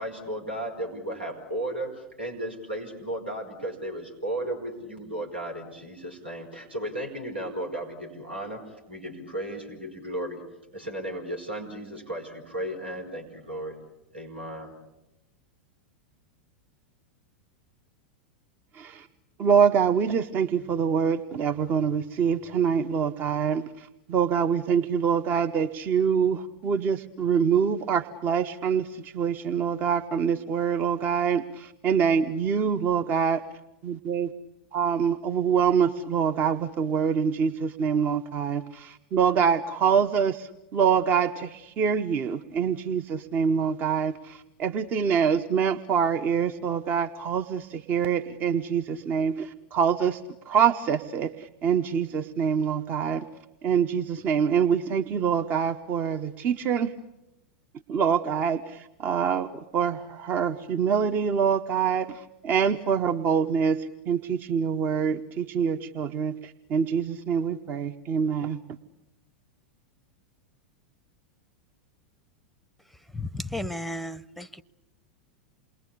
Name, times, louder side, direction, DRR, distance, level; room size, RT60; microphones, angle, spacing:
voice 1, 0.0-10.4 10.7-13.8 14.1-14.7, right 1 dB, 85° right, 5.1 m, -35 dB
voice 2, 18.7-19.1 19.4-33.4 33.8-34.3 34.7-50.2 50.5-53.3 53.6-56.9 57.9-68.6, right 7 dB, 35° right, 1.0 m, -25 dB
voice 3, 73.1-74.6, left 1 dB, ahead, 0.9 m, -34 dB
28.5 x 21.5 x 8.5 m
figure-of-eight pair, 90°, 6 cm